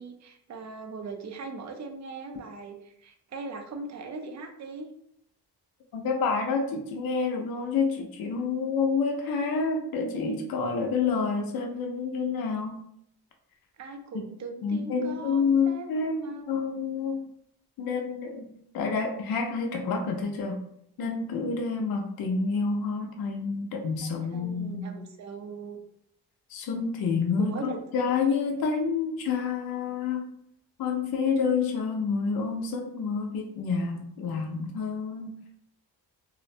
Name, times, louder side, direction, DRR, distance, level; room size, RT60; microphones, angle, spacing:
voice 1, 0.0-4.9 13.8-16.4 24.3-25.8 27.5-27.8, right 3 dB, 45° right, 5 dB, 0.5 m, -40 dB
voice 2, 5.9-12.7 14.1-14.3 14.6-16.2 16.5-17.2 17.8-18.5 18.7-20.6 21.0-24.8 26.5-30.3 30.8-35.3, left 5 dB, 60° left, 2 dB, 0.5 m, -28 dB
2.4 x 2.1 x 2.6 m, 0.72 s
cardioid pair, 100°, 40 cm